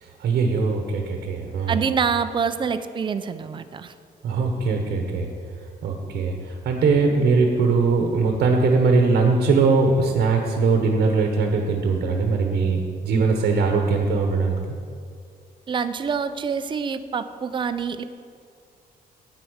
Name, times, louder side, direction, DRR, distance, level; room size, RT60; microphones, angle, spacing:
voice 1, 0.0-1.8 4.2-5.3 5.8-14.6, right 4 dB, 65° right, 3 dB, 1.1 m, -21 dB
voice 2, 1.7-3.9 15.7-18.0, right 6 dB, 30° right, 10 dB, 0.5 m, -26 dB
9.1 x 8.4 x 6.3 m, 2.2 s
cardioid pair, 175°, 17 cm